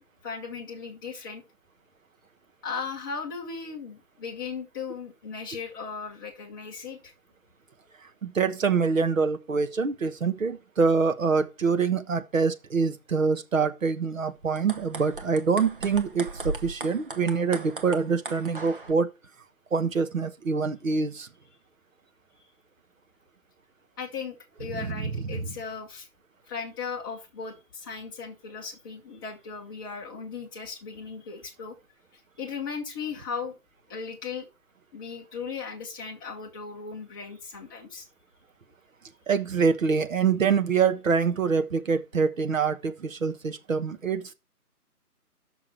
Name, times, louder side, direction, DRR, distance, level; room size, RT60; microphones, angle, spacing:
voice 1, 0.0-1.4 2.6-7.1 22.4-22.5 24.0-26.1 26.5-31.8 32.1-33.5 33.9-34.5 34.9-38.1, left 5 dB, 15° left, 1.2 m, -37 dB
voice 2, 8.2-19.1 19.7-21.3 24.8-24.9 39.3-44.3, right 5 dB, 60° right, 1.3 m, -25 dB
sound 1, 14.4-18.9, right 3 dB, 35° right, 0.8 m, -37 dB
6.3 x 6.2 x 5.8 m
figure-of-eight pair, 160°, 46 cm